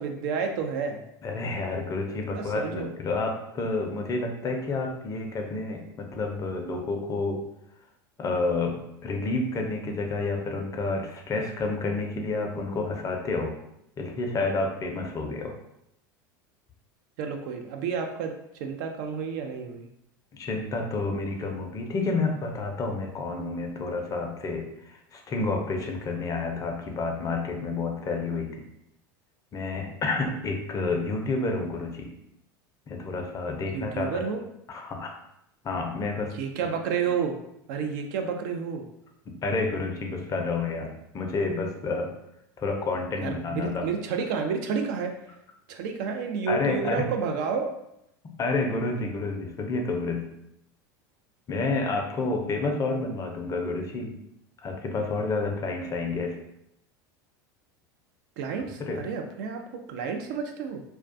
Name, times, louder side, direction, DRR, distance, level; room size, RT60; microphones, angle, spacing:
voice 1, 0.0-1.0 2.3-2.9 17.2-18.3 18.6-19.9 33.7-34.4 36.3-37.4 37.7-38.9 43.2-45.2 45.7-47.7 58.4-60.8, right 6 dB, 65° right, 4 dB, 0.4 m, -30 dB
voice 2, 1.2-7.4 8.2-13.5 14.0-15.5 20.3-28.6 29.5-32.1 32.9-34.2 34.7-35.1 35.6-36.3 39.3-42.1 42.6-43.9 46.5-47.1 48.4-50.3 51.5-54.1 54.6-56.4 58.8-59.0, left 3 dB, 30° left, 3 dB, 0.5 m, -29 dB
2.2 x 2.2 x 2.5 m, 0.79 s
hypercardioid pair, 85°, 11 cm